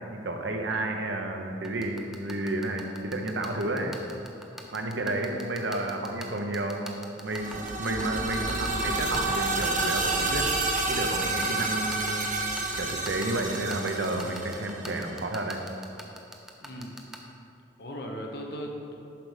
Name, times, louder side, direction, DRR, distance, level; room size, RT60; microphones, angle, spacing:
voice 1, 0.1-4.0 4.7-10.5 10.9-12.3 12.8-15.6, right 2 dB, 80° right, 3 dB, 0.8 m, -31 dB
sound 1, 1.6-17.2, equal, 5° right, 0.5 m, -41 dB
sound 2, 7.3-15.1, right 2 dB, 45° right, 0.8 m, -29 dB
voice 2, 16.6-16.9 17.8-18.9, equal, 60° left, 1 dB, 1.0 m, -38 dB
7.5 x 5.3 x 5.0 m, 2.6 s
head